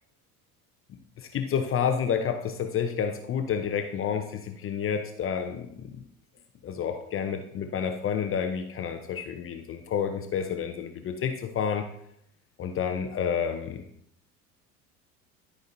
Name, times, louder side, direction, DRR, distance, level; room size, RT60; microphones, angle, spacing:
voice 1, 1.2-5.9 6.6-11.9 12.6-13.8, left 7 dB, 30° left, 5 dB, 0.7 m, -29 dB
12.5 x 5.0 x 2.7 m, 0.72 s
figure-of-eight pair, 65°, 44 cm